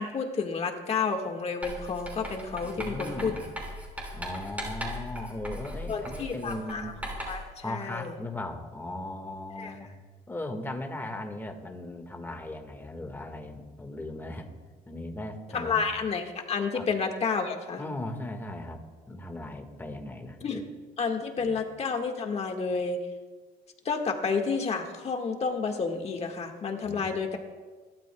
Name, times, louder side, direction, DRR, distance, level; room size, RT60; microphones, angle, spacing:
voice 1, 0.0-3.3 5.9-6.9 7.3-8.1 9.6-9.8 15.5-17.8 20.4-20.6 21.0-23.0 23.9-27.4, left 5 dB, 40° left, 3 dB, 1.7 m, -30 dB
Writing, 1.6-7.5, equal, 10° right, 5.2 m, -39 dB
voice 2, 2.6-3.4 4.1-6.9 7.6-9.9 10.3-14.5 14.9-15.9 16.7-16.9 17.8-18.8 19.1-20.6 21.4-21.6 26.8-27.1, left 1 dB, 10° left, 4 dB, 1.7 m, -38 dB
29.0 x 12.0 x 2.3 m, 1.4 s
cardioid pair, 110°, 17 cm